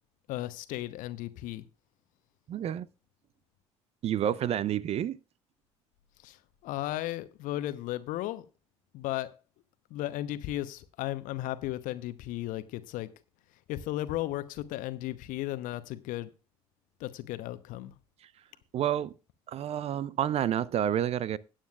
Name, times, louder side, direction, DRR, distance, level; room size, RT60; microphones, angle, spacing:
voice 1, 0.3-1.6 6.2-6.4 6.6-8.4 8.9-9.3 9.9-13.1 13.7-16.3 17.0-17.9, left 15 dB, 60° left, 0.9 m, -35 dB
voice 2, 2.5-2.9 4.0-5.2 18.7-19.1 19.5-21.4, right 10 dB, 40° right, 0.5 m, -29 dB
17.5 x 8.9 x 2.4 m
figure-of-eight pair, 60°, 16 cm